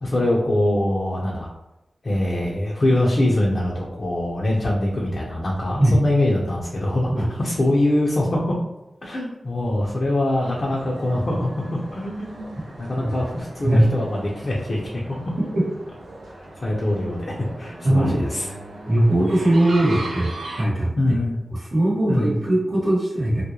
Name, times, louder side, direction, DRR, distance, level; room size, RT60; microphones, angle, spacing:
voice 1, 0.0-1.5 2.0-8.5 9.0-11.5 11.9-12.5 12.9-14.8 16.6-18.4 21.0-21.4 22.1-22.3, left 1 dB, 60° left, -4 dB, 0.6 m, -23 dB
sound 1, 10.4-20.6, right 1 dB, 90° right, 0.5 m, -38 dB
voice 2, 17.8-18.2 18.9-20.3 20.6-20.9 21.5-23.4, right 1 dB, 50° right, -7 dB, 1.0 m, -19 dB
2.3 x 2.1 x 2.9 m, 0.94 s
cardioid pair, 40°, 0 cm